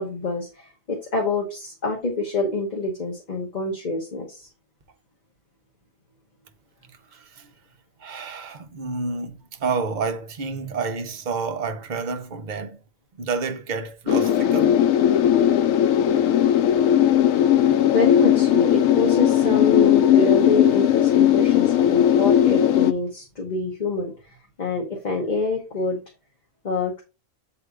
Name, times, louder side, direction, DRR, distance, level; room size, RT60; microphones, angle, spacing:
voice 1, 0.0-4.5 17.9-26.0 26.6-27.0, left 3 dB, 35° left, 1.0 m, -26 dB
voice 2, 7.1-7.5 8.0-12.8 13.2-14.8, right 4 dB, 45° right, 0.7 m, -29 dB
sound 1, 14.1-22.9, left 10 dB, 80° left, 1.0 m, -18 dB
7.9 x 2.7 x 4.7 m
omnidirectional pair, 1.4 m